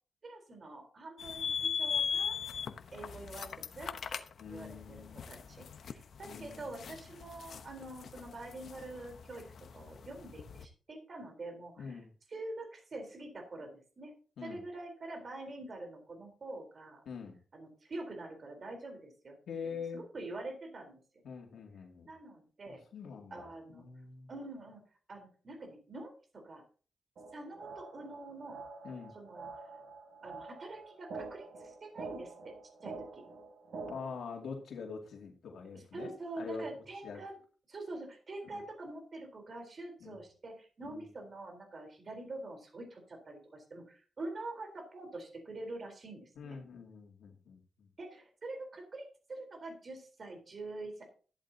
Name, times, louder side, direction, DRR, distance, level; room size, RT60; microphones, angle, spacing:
voice 1, 0.2-2.4 2.9-4.2 4.5-9.4 9.7-14.1 14.4-17.0 17.5-19.4 19.9-21.0 22.1-22.8 23.3-23.8 24.3-24.8 25.1-26.6 27.3-28.6 29.1-29.7 30.2-32.5 32.8-33.2 35.7-37.4 37.7-46.6 48.0-51.0, right 2 dB, 40° right, 3 dB, 3.9 m, -45 dB
sound 1, 1.2-10.7, left 7 dB, 70° left, 0.9 m, -39 dB
voice 2, 4.4-5.2 6.3-6.6 11.8-12.1 14.4-14.6 17.1-17.4 19.5-20.0 21.2-22.1 22.9-24.3 28.8-29.1 33.9-36.1 36.4-36.7 37.0-37.2 38.5-38.6 40.0-40.2 40.8-41.0 46.4-47.6, left 5 dB, 85° left, 1 dB, 2.3 m, -44 dB
sound 2, 27.2-34.2, right 3 dB, 70° right, 3.2 m, -47 dB
14.0 x 11.5 x 2.8 m, 0.38 s
wide cardioid pair, 120°, 0 cm